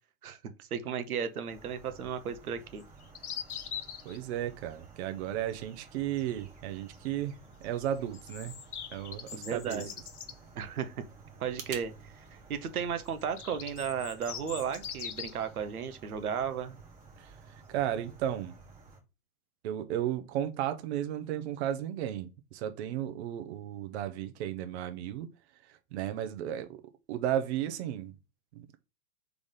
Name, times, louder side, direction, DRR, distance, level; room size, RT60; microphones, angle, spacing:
voice 1, 0.7-2.8 9.3-9.9 10.6-10.9 11.4-16.8, right 7 dB, 80° right, 0.9 m, -34 dB
sound 1, 1.5-19.0, right 4 dB, 20° right, 1.3 m, -54 dB
sound 2, 2.8-4.2 7.8-10.4 13.1-15.5, left 8 dB, 85° left, 0.8 m, -42 dB
voice 2, 4.0-7.3 7.6-8.5 8.9-9.8 17.2-17.3 17.7-18.6 19.6-25.3 25.7-26.8 27.1-28.1, right 11 dB, 50° right, 0.7 m, -34 dB
sound 3, 9.2-11.9, right 7 dB, 65° right, 1.3 m, -48 dB
3.8 x 3.5 x 3.6 m
hypercardioid pair, 120°, 43 cm